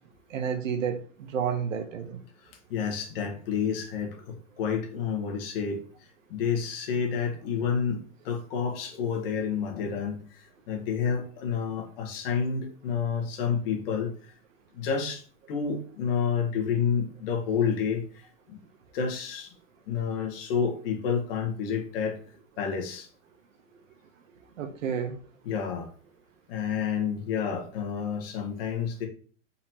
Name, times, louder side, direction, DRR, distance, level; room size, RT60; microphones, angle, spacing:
voice 1, 0.3-2.2 24.6-25.2, right 7 dB, 80° right, 1.1 m, -30 dB
voice 2, 2.4-5.8 6.3-8.0 8.2-14.3 14.7-15.2 15.5-18.6 18.9-19.5 19.9-22.2 22.6-23.1 25.4-25.9 26.5-29.1, left 6 dB, 45° left, 1.4 m, -29 dB
4.1 x 2.9 x 4.3 m
supercardioid pair, 160°, 38 cm